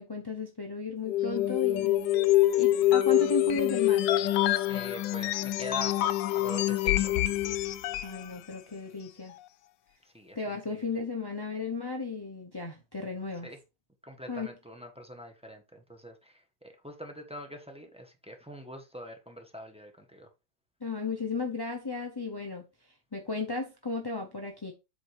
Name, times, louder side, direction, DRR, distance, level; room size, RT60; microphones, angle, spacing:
voice 1, 0.0-2.0 2.6-4.1 8.0-9.3 10.3-13.5 14.3-14.5 20.8-22.6 23.1-24.7, left 3 dB, 25° left, 0.5 m, -34 dB
sound 1, 1.1-8.2, left 14 dB, 80° left, 1.3 m, -26 dB
voice 2, 4.7-7.2 10.1-10.4 10.7-10.9 13.4-13.6 14.0-20.3, equal, 5° right, 1.0 m, -44 dB
7.8 x 3.8 x 5.0 m
omnidirectional pair, 2.0 m